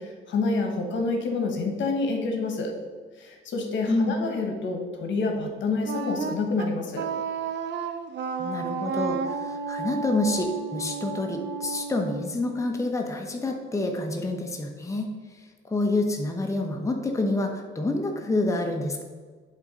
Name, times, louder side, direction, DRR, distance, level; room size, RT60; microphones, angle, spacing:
voice 1, 0.0-2.7 3.2-7.0, left 3 dB, 70° left, 3 dB, 1.4 m, -28 dB
Wind instrument woodwind instrument, 5.8-12.8, right 5 dB, 60° right, 0.7 m, -32 dB
voice 2, 8.4-15.1 15.7-19.0, left 2 dB, 15° left, 2 dB, 0.9 m, -27 dB
8.2 x 3.7 x 5.3 m, 1.5 s
cardioid pair, 90°, 20 cm